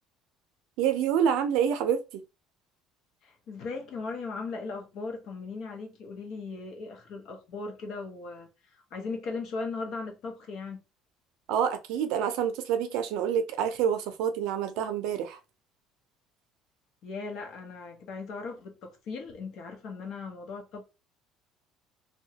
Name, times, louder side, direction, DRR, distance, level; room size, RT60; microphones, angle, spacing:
voice 1, 0.8-2.0 11.5-15.4, right 8 dB, 75° right, 0.5 m, -27 dB
voice 2, 3.2-10.8 17.0-20.8, left 4 dB, 50° left, 0.8 m, -38 dB
2.8 x 2.2 x 2.7 m
cardioid pair, 165°, 0 cm